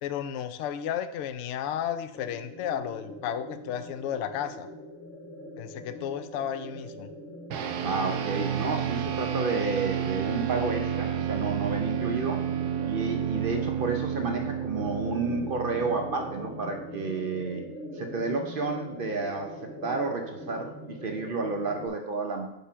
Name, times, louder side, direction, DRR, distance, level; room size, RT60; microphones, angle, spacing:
voice 1, 0.0-4.7 5.6-7.1, left 9 dB, 65° left, 10 dB, 0.7 m, -33 dB
sound 1, 2.1-21.9, equal, 10° left, 0.7 m, -42 dB
sound 2, 7.5-17.1, right 9 dB, 85° right, 1.2 m, -31 dB
voice 2, 7.8-12.5 12.8-17.6 17.9-22.5, right 3 dB, 50° right, 3 dB, 0.6 m, -31 dB
5.5 x 4.8 x 5.6 m, 0.86 s
omnidirectional pair, 1.7 m